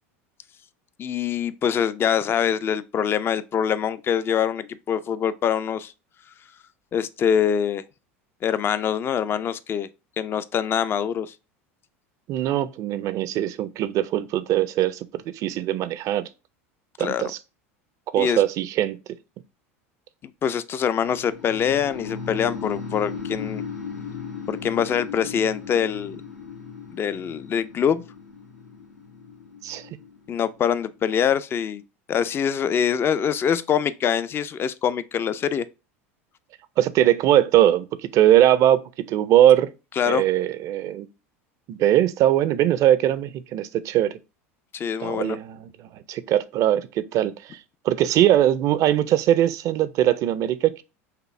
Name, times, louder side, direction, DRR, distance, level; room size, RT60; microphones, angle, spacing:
voice 1, 1.0-5.9 6.9-7.8 8.4-9.9 10.2-11.3 17.0-17.2 18.2-18.4 20.4-23.6 24.5-26.2 26.9-28.0 30.3-31.8 32.1-35.7 40.0-40.2 44.7-45.4, left 8 dB, 30° left, 0.4 m, -24 dB
voice 2, 12.3-16.3 17.0-17.4 18.1-19.0 29.6-29.9 36.8-39.7 40.1-41.1 41.7-44.2 45.0-47.6 47.8-50.8, right 12 dB, 50° right, 0.4 m, -21 dB
sound 1, 21.0-31.0, left 6 dB, 90° left, 1.2 m, -37 dB
5.6 x 2.0 x 3.1 m
hypercardioid pair, 85°, 7 cm